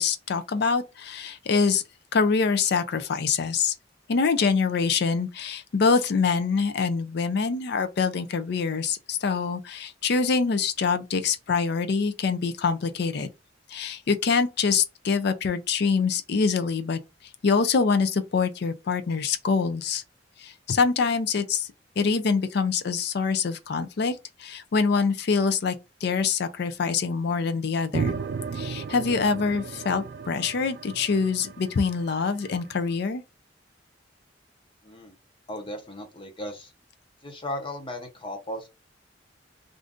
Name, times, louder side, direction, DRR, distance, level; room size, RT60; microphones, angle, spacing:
voice 1, 0.0-1.8 2.1-3.7 4.1-13.3 13.7-17.0 17.4-20.0 20.4-21.7 22.0-25.8 26.0-28.1 28.5-33.2, left 5 dB, 60° left, 0.5 m, -25 dB
sound 1, 27.9-32.6, right 5 dB, 65° right, 0.4 m, -34 dB
voice 2, 34.8-35.2 35.5-36.7 37.2-38.7, left 1 dB, 30° left, 0.7 m, -36 dB
2.5 x 2.5 x 3.5 m
head